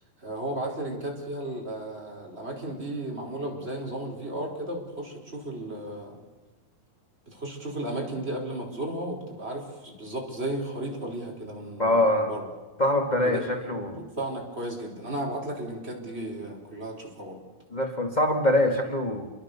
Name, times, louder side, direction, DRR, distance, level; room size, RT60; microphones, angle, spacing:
voice 1, 0.2-6.2 7.3-12.5 13.2-13.7 14.0-17.4, right 1 dB, 15° right, 0 dB, 4.8 m, -34 dB
voice 2, 11.8-12.3 12.8-14.0 17.7-19.3, left 1 dB, 85° left, 2 dB, 0.4 m, -24 dB
28.5 x 23.0 x 6.9 m, 1.3 s
omnidirectional pair, 4.3 m